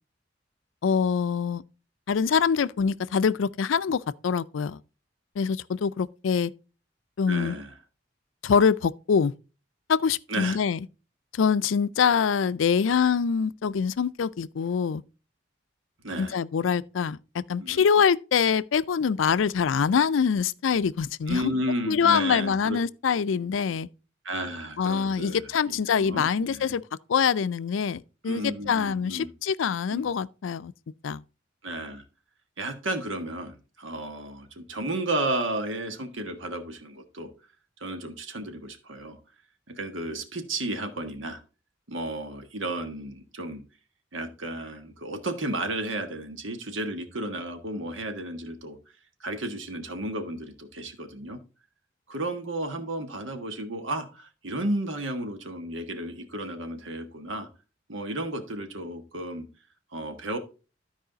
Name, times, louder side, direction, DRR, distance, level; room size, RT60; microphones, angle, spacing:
voice 1, 0.8-1.6 2.1-4.8 5.4-6.5 7.2-7.6 8.4-9.3 9.9-10.9 11.3-15.0 16.2-21.5 21.9-23.9 24.8-26.8 27.1-30.7 31.0-31.2, left 6 dB, 85° left, 0.4 m, -24 dB
voice 2, 7.3-7.7 10.3-10.6 16.0-16.3 17.6-17.8 21.3-22.8 24.2-26.8 28.3-29.3 29.9-30.1 31.6-32.0 32.6-37.3 37.8-39.2 39.7-41.4 41.9-43.6 44.1-48.8 49.2-51.4 52.1-57.5 57.9-59.5 59.9-60.4, right 1 dB, 90° right, 1.5 m, -33 dB
12.5 x 4.8 x 3.9 m
head